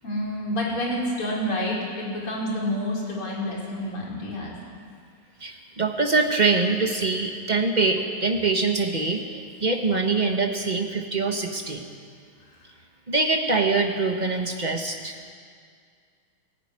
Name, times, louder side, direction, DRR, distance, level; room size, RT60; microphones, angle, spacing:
voice 1, 0.0-4.6, left 1 dB, 45° left, -4 dB, 5.9 m, -28 dB
voice 2, 5.4-11.9 13.1-15.1, right 3 dB, 45° right, 3 dB, 0.5 m, -24 dB
22.5 x 15.0 x 10.0 m, 2.2 s
omnidirectional pair, 3.3 m